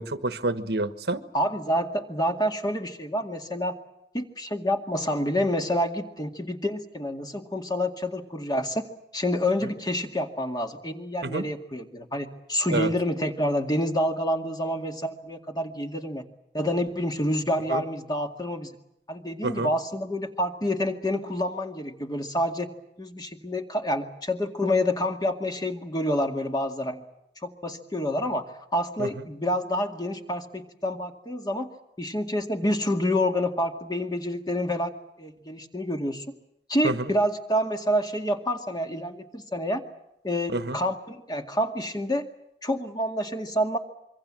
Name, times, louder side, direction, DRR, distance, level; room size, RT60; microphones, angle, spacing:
voice 1, 0.0-1.2 11.2-11.5 12.7-12.9 17.7-17.8 19.4-19.7 29.0-29.1 36.8-37.0 40.5-40.8, right 2 dB, 65° right, 11 dB, 1.3 m, -28 dB
voice 2, 1.3-3.7 4.1-8.9 9.1-16.2 16.5-18.7 19.1-22.7 23.0-27.0 27.4-31.7 32.0-34.9 35.2-36.3 36.7-39.8 40.2-42.2 42.6-43.8, equal, 25° left, 4 dB, 2.2 m, -28 dB
26.5 x 24.0 x 7.6 m, 0.83 s
head